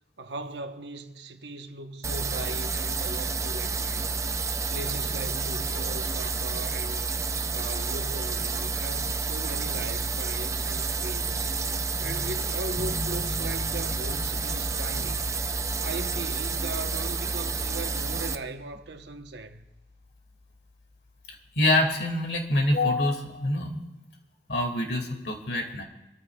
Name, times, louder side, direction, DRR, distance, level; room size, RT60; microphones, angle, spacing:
voice 1, 0.2-4.1 4.7-7.1 7.5-11.5 12.0-15.3 15.8-19.6, right 2 dB, 85° right, 1.1 m, -39 dB
sound 1, 2.0-18.4, right 4 dB, 15° right, 0.5 m, -30 dB
voice 2, 12.0-12.3 21.3-23.8 24.5-25.8, left 1 dB, 75° left, 2.3 m, -26 dB
sound 2, 12.8-22.6, left 1 dB, 5° left, 1.0 m, -42 dB
26.5 x 14.0 x 2.4 m
head